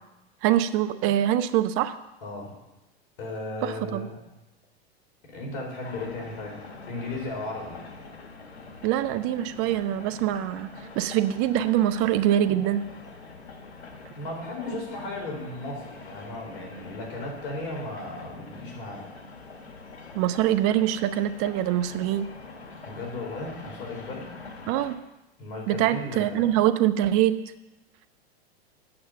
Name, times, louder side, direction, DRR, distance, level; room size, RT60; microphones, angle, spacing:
voice 1, 0.4-2.0 3.6-4.1 8.8-10.7 11.0-12.8 20.1-22.3 24.7-25.0 25.7-27.4, right 12 dB, 45° right, 11 dB, 0.8 m, -24 dB
voice 2, 2.2-2.5 3.2-4.1 5.3-7.9 14.2-19.1 22.8-24.4 25.4-26.6, left 2 dB, 60° left, 0 dB, 4.4 m, -36 dB
sound 1, 5.8-25.0, left 3 dB, 90° left, 1.4 m, -45 dB
8.8 x 7.0 x 6.9 m, 0.97 s
hypercardioid pair, 105°, 32 cm